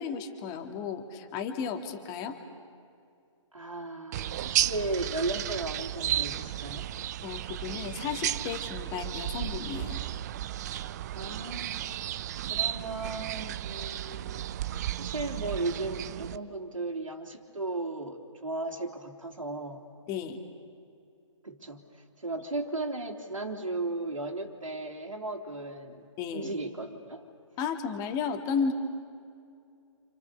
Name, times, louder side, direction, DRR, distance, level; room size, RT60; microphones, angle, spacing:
voice 1, 0.0-2.4 7.2-10.0 20.1-20.4 26.2-26.5 27.6-28.7, left 6 dB, 20° left, 6 dB, 2.1 m, -33 dB
voice 2, 3.5-6.9 11.1-14.5 15.0-19.8 21.4-26.1 26.3-27.2, right 2 dB, 90° right, 0 dB, 3.5 m, -36 dB
sound 1, 4.1-16.4, right 12 dB, 30° right, 0.6 m, -33 dB
29.0 x 27.5 x 6.9 m, 2.4 s
figure-of-eight pair, 140°, 17 cm